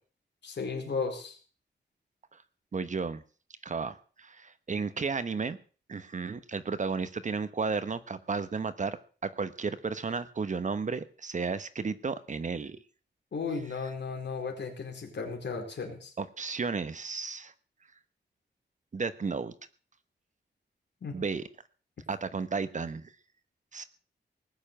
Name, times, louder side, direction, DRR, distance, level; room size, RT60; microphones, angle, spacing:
voice 1, 0.4-1.3 13.3-16.1 21.0-21.2, left 4 dB, 75° left, 3 dB, 4.5 m, -35 dB
voice 2, 2.7-3.2 3.6-5.6 5.9-9.0 9.2-12.8 16.2-17.5 18.9-19.5 21.1-21.4 22.1-23.1 23.7-23.8, right 4 dB, 40° right, 13 dB, 1.0 m, -33 dB
19.0 x 7.1 x 8.8 m, 0.40 s
wide cardioid pair, 155°, 18 cm